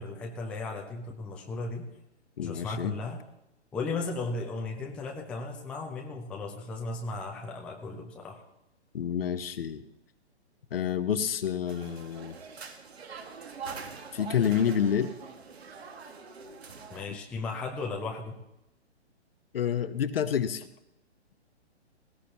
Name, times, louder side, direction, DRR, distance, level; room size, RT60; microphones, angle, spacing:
voice 1, 0.0-1.9 2.4-3.2 3.7-8.4 16.9-18.4, left 3 dB, 5° left, 1 dB, 0.5 m, -36 dB
voice 2, 2.4-3.0 8.9-9.8 10.7-12.4 14.1-15.1 19.5-20.7, left 8 dB, 55° left, 12 dB, 1.0 m, -28 dB
sound 1, 11.7-17.1, right 5 dB, 65° right, 1.9 m, -44 dB
18.5 x 15.5 x 2.9 m, 0.87 s
figure-of-eight pair, 125°, 34 cm